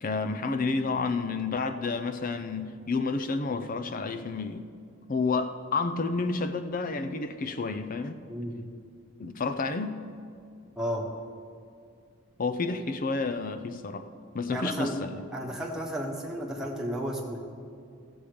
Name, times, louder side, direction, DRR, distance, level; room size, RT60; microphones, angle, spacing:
voice 1, 0.0-4.6 5.1-8.2 9.2-10.0 12.4-14.1 14.3-15.2, left 4 dB, 40° left, 10 dB, 0.5 m, -30 dB
voice 2, 8.3-8.6 10.8-11.1 14.5-15.0 15.3-17.4, equal, ahead, -3 dB, 1.2 m, -33 dB
15.0 x 7.1 x 5.1 m, 2.3 s
head